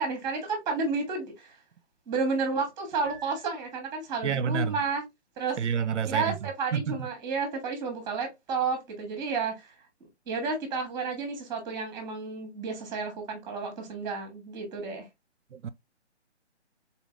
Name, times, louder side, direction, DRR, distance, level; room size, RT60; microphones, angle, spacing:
voice 1, 0.0-1.6 2.1-5.0 5.4-5.6 6.0-9.7 10.3-15.1, right 4 dB, 10° right, 1.3 m, -31 dB
Piano, 3.0-4.3, right 4 dB, 20° left, 1.4 m, -51 dB
voice 2, 4.2-4.8 5.6-7.0 15.5-15.7, right 7 dB, 80° right, 0.5 m, -29 dB
4.0 x 3.8 x 2.3 m
hypercardioid pair, 150°, 35 cm